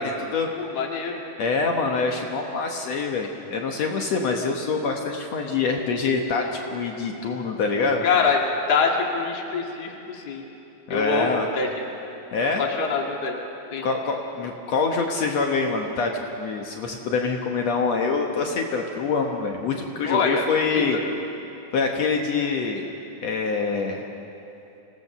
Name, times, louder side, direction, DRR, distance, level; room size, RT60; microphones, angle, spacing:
voice 1, 0.0-0.5 1.4-8.1 10.9-11.5 12.3-12.6 13.8-16.1 16.4-21.0 21.7-22.8 23.2-24.1, left 4 dB, 65° left, 2 dB, 2.3 m, -25 dB
voice 2, 0.6-1.2 8.0-8.4 8.7-10.4 10.9-11.7 12.4-13.4 13.7-13.9 20.1-20.8, left 5 dB, 35° left, 1 dB, 2.1 m, -25 dB
26.5 x 17.5 x 6.8 m, 2.9 s
omnidirectional pair, 3.4 m